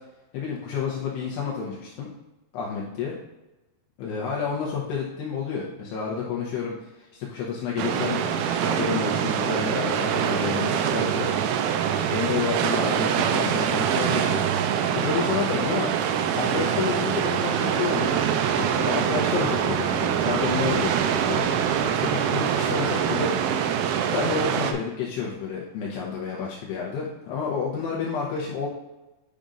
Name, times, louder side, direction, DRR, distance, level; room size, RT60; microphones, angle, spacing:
voice 1, 0.3-2.1 2.5-3.1 4.0-14.5 14.9-15.9 16.3-18.2 18.4-23.7 24.1-28.7, left 6 dB, 80° left, -3 dB, 2.5 m, -30 dB
sound 1, 7.8-24.7, right 8 dB, 85° right, 3.0 m, -24 dB
10.0 x 5.2 x 2.5 m, 1.1 s
omnidirectional pair, 5.6 m